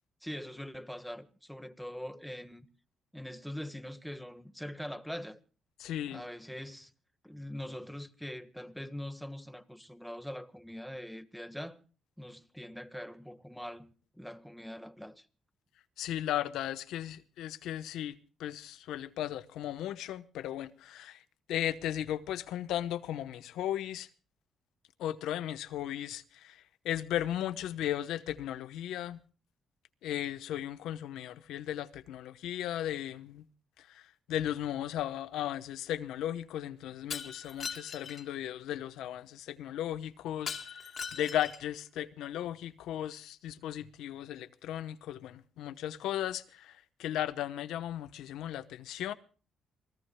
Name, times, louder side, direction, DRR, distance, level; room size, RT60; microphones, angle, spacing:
voice 1, 0.2-2.7 3.1-5.4 6.1-6.9 7.2-11.8 12.2-15.3, equal, ahead, 1.5 m, -43 dB
voice 2, 5.8-6.2 16.0-21.2 21.5-24.1 25.0-26.6 26.8-29.2 30.0-33.4 33.9-49.1, left 11 dB, 85° left, 1.0 m, -36 dB
Shatter, 37.1-38.3 40.5-41.7, left 6 dB, 50° left, 2.8 m, -40 dB
27.5 x 18.5 x 2.2 m
cardioid pair, 90°, 0 cm